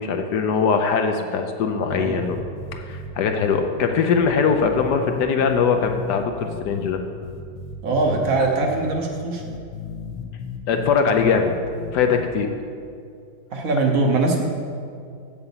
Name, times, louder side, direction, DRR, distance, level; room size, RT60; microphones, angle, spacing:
voice 1, 0.0-2.4 2.7-7.0 10.7-11.5 11.9-12.5, left 5 dB, 70° left, 5 dB, 1.1 m, -21 dB
sound 1, 1.9-3.1 3.4-3.6 4.1-6.9 7.2-8.4 8.7-8.9 9.4-12.2, left 6 dB, 85° left, 1.7 m, -34 dB
voice 2, 7.8-9.4 13.5-14.4, right 3 dB, 55° right, 1 dB, 1.2 m, -21 dB
7.9 x 6.9 x 7.2 m, 2.3 s
omnidirectional pair, 2.1 m